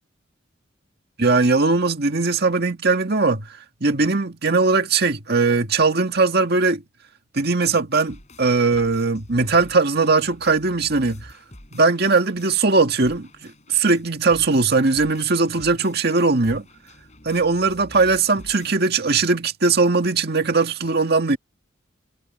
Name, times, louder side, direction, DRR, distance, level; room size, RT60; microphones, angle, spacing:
voice 1, 1.2-3.5 3.8-6.8 7.3-11.3 11.7-16.7 17.3-21.4, right 3 dB, 55° right, 1.9 m, -19 dB
sound 1, 7.9-18.7, left 1 dB, 40° left, 7.0 m, -47 dB
head